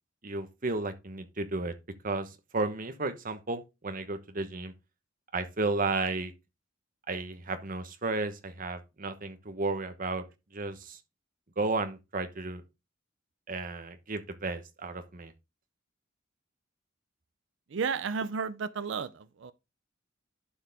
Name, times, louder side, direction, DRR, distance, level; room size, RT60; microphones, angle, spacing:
voice 1, 0.2-1.7 2.0-4.7 5.3-6.3 7.1-10.2 10.5-11.0 11.6-12.6 13.5-15.3, right 3 dB, 45° right, 1.1 m, -33 dB
voice 2, 17.7-19.5, right 5 dB, 65° right, 0.5 m, -33 dB
11.5 x 4.7 x 3.5 m
head